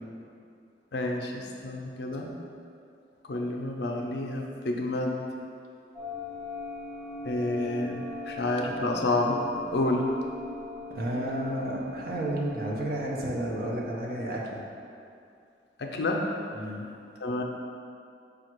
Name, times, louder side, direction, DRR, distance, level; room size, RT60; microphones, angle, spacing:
voice 1, 0.9-2.4 3.3-5.2 7.2-10.2 15.8-16.3 17.2-17.4, left 2 dB, 70° left, 1 dB, 0.5 m, -29 dB
sound 1, 5.9-14.0, left 2 dB, 20° right, 1.2 m, -41 dB
voice 2, 10.9-14.6 16.5-16.9, right 1 dB, 55° right, -3 dB, 0.6 m, -31 dB
5.0 x 2.3 x 4.4 m, 2.5 s
head